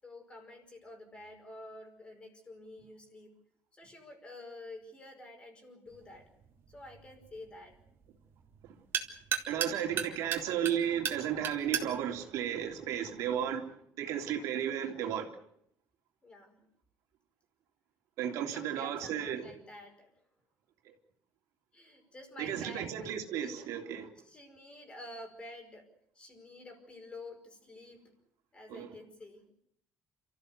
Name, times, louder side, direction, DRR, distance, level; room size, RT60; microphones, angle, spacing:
voice 1, 0.0-3.3 3.7-6.3 6.7-7.8 9.6-10.7 11.6-11.8 16.2-16.7 18.3-20.1 21.7-22.9 23.3-23.7 24.2-25.9 26.2-28.1 28.5-29.4, left 1 dB, 20° left, 5.2 m, -50 dB
sound 1, 5.9-13.5, right 8 dB, 40° right, 3.0 m, -39 dB
voice 2, 9.5-13.7 14.0-15.3 18.2-19.4 22.4-24.1 28.7-28.9, right 9 dB, 65° right, 3.3 m, -34 dB
29.5 x 15.0 x 8.3 m
cardioid pair, 175°, 6 cm